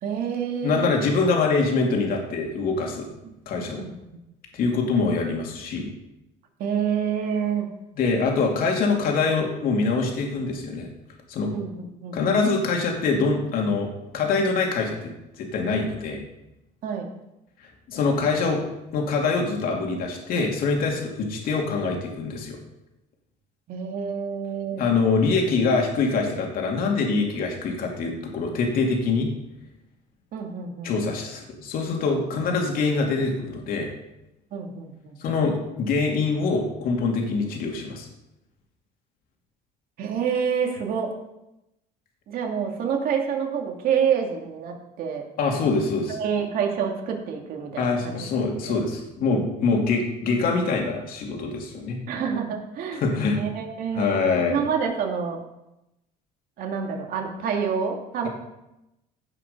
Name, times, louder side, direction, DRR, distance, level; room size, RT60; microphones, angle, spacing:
voice 1, 0.0-0.9 3.5-4.2 6.6-7.7 11.5-12.2 16.8-17.1 23.7-24.8 30.3-31.1 34.5-35.2 40.0-41.1 42.3-45.3 46.1-48.2 48.7-48.8 52.1-53.0 53.3-55.4 56.6-58.3, right 7 dB, 60° right, 2 dB, 2.5 m, -28 dB
voice 2, 0.6-3.1 3.5-3.8 4.5-5.9 8.0-10.9 11.3-11.5 12.1-16.2 17.9-18.6 18.9-22.6 24.8-29.3 30.8-33.9 35.2-38.1 45.4-46.2 47.8-52.0 53.0-53.4 53.9-54.6, left 4 dB, 60° left, 1 dB, 2.7 m, -24 dB
16.5 x 5.9 x 5.4 m, 0.90 s
cardioid pair, 120°, 17 cm